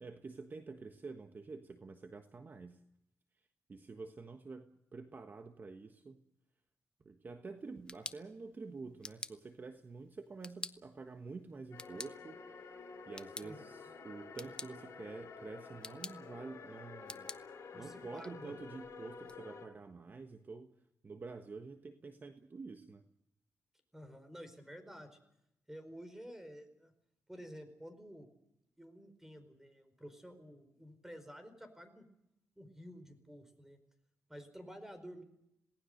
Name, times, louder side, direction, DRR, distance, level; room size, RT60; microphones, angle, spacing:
voice 1, 0.0-2.8 3.7-6.2 7.0-12.7 13.1-17.3 17.7-20.8 21.0-23.0, right 4 dB, 35° right, 7 dB, 1.4 m, -48 dB
sound 1, 7.6-19.4, left 2 dB, 15° left, 1.0 m, -52 dB
sound 2, 11.7-19.7, left 5 dB, 60° left, 5.6 m, -51 dB
voice 2, 17.7-18.5 23.9-25.2 25.7-26.9 27.3-28.3 28.8-32.1 32.6-33.8 34.3-35.2, equal, 5° right, 9 dB, 4.6 m, -51 dB
27.5 x 18.5 x 6.6 m, 0.80 s
cardioid pair, 105°, 5 cm